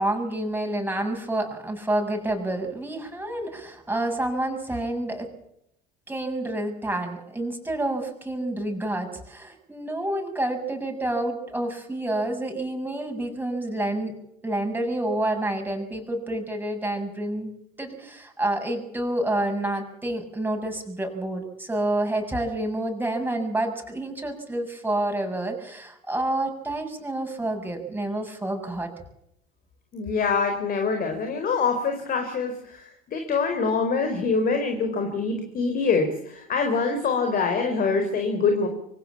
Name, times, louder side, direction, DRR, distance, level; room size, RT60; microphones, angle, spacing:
voice 1, 0.0-5.3 6.1-14.1 14.4-17.5 17.8-28.9, right 1 dB, 10° right, 3 dB, 7.2 m, -28 dB
voice 2, 29.9-38.7, left 4 dB, 45° left, 5 dB, 4.4 m, -25 dB
24.5 x 16.5 x 7.3 m, 0.77 s
hypercardioid pair, 70°, 20 cm